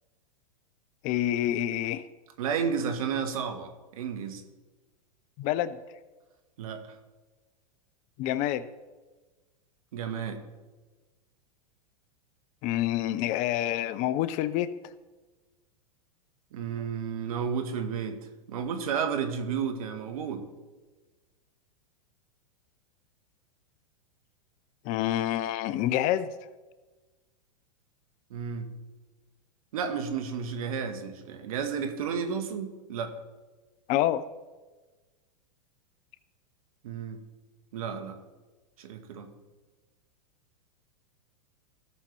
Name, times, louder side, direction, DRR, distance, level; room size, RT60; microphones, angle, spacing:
voice 1, 1.0-2.0 5.4-5.8 8.2-8.7 12.6-14.7 24.9-26.3 33.9-34.2, left 12 dB, 40° left, 16 dB, 0.6 m, -27 dB
voice 2, 2.4-4.4 6.6-6.8 9.9-10.4 16.5-18.2 18.5-20.4 28.3-28.7 29.7-33.1 36.8-37.2 37.7-38.2 38.8-39.3, right 6 dB, 70° right, 7 dB, 1.5 m, -32 dB
17.0 x 6.5 x 3.4 m, 1.2 s
hypercardioid pair, 110°, 19 cm